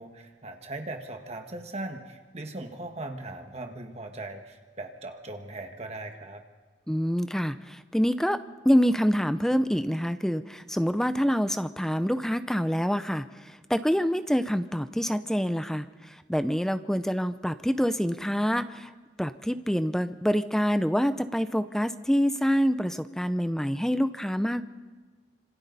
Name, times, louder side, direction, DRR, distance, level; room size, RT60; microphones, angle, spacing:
voice 1, 0.0-6.4, right 2 dB, 35° right, 5 dB, 1.6 m, -39 dB
voice 2, 6.9-8.4 8.6-18.9 19.2-24.6, equal, 5° left, 11 dB, 0.5 m, -26 dB
26.5 x 25.5 x 4.1 m, 1.4 s
head